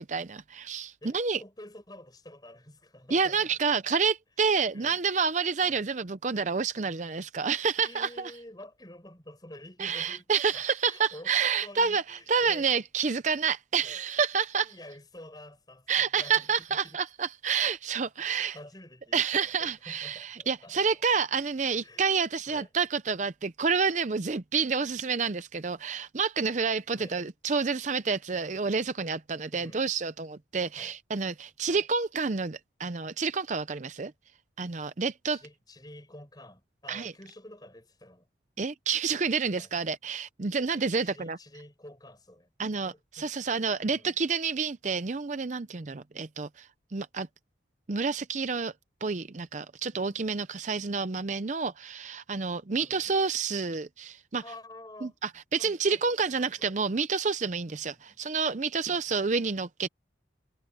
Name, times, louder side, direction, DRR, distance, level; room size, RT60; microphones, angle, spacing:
voice 1, 0.0-1.4 3.1-8.3 9.8-14.7 15.9-18.6 19.1-34.1 34.6-35.4 36.9-37.1 38.6-41.4 42.6-47.3 47.9-48.7 49.0-54.4 55.0-59.9, right 5 dB, 40° right, 0.6 m, -29 dB
voice 2, 1.0-3.6 4.7-5.0 5.6-5.9 7.8-10.3 10.5-11.3 11.6-12.7 13.8-14.0 14.6-17.0 18.2-21.2 21.8-22.1 22.5-22.7 26.9-27.2 29.4-29.9 30.7-30.9 31.7-31.9 35.3-38.3 39.4-39.9 40.7-42.5 42.8-43.3 43.8-44.2 49.9-50.2 52.8-53.2 54.4-55.2 55.6-56.7 57.6-58.2 58.9-59.6, left 1 dB, 20° left, 6.2 m, -49 dB
head